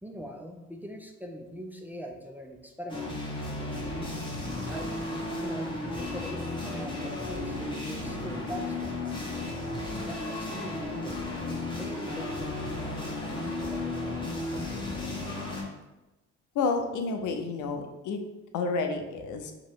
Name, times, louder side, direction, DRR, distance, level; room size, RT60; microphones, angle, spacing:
voice 1, 0.0-3.1 3.4-4.1 4.7-8.9 10.0-14.9, equal, 5° right, 2 dB, 0.4 m, -42 dB
sound 1, 2.9-15.6, left 2 dB, 15° left, 1.2 m, -34 dB
voice 2, 16.5-18.2 18.5-19.5, left 4 dB, 75° left, 5 dB, 0.6 m, -30 dB
3.0 x 2.9 x 4.5 m, 1.0 s
cardioid pair, 90°, 30 cm